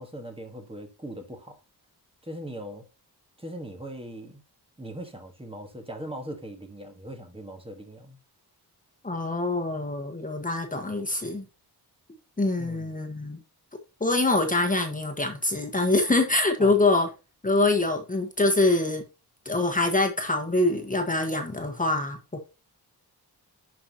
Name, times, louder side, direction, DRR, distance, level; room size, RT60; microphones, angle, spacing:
voice 1, 0.0-1.6 2.2-2.9 3.4-4.4 4.8-8.2 12.6-12.9 16.6-16.8, right 1 dB, 15° right, 1.6 m, -40 dB
voice 2, 9.0-11.4 12.4-13.4 14.0-17.1 17.4-19.0 19.4-22.4, left 2 dB, 20° left, 1.5 m, -24 dB
11.0 x 5.9 x 3.0 m
wide cardioid pair, 180°, 40 cm